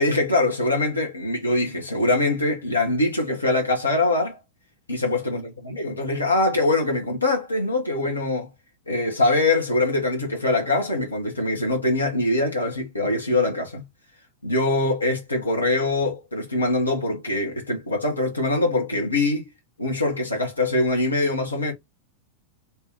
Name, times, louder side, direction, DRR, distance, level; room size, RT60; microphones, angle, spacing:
voice 1, 0.0-4.4 4.9-8.5 8.9-13.8 14.4-19.4 19.8-21.7, left 2 dB, 80° left, 1.2 m, -23 dB
3.0 x 2.5 x 3.0 m
figure-of-eight pair, 90°, 0 cm